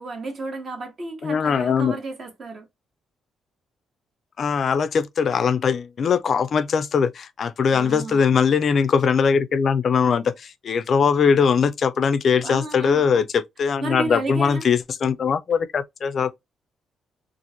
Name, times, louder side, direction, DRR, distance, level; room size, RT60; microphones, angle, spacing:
voice 1, 0.0-2.7 7.7-8.4 12.4-13.2 13.8-14.6, right 3 dB, 35° right, 0.8 m, -32 dB
voice 2, 1.2-2.0 4.4-16.4, left 6 dB, 40° left, 0.3 m, -21 dB
2.9 x 2.4 x 2.6 m
cardioid pair, 165°, 0 cm